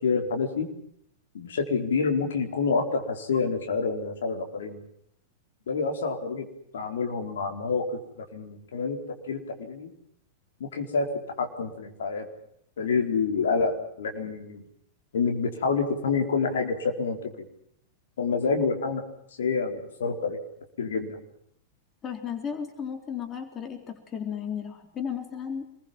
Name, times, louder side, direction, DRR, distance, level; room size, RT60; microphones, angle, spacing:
voice 1, 0.0-0.7 1.3-4.8 5.7-6.5 6.7-9.0 9.3-9.9 10.6-11.1 11.4-12.3 12.8-14.6 15.1-17.5 18.2-19.0 19.4-20.4 20.8-21.2, left 5 dB, 60° left, 3 dB, 4.6 m, -27 dB
voice 2, 22.0-25.7, left 7 dB, 25° left, 5 dB, 3.8 m, -34 dB
28.0 x 22.0 x 7.6 m, 0.72 s
figure-of-eight pair, 95°, 0 cm